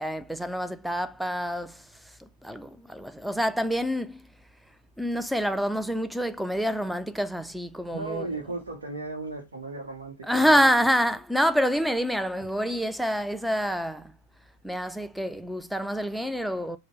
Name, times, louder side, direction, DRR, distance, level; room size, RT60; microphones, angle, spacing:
voice 1, 0.0-4.3 5.0-8.3 10.2-14.1 14.6-16.8, equal, ahead, 0.3 m, -27 dB
voice 2, 7.9-10.7, right 3 dB, 70° right, 0.8 m, -36 dB
5.1 x 2.0 x 3.9 m
figure-of-eight pair, 90°, 0 cm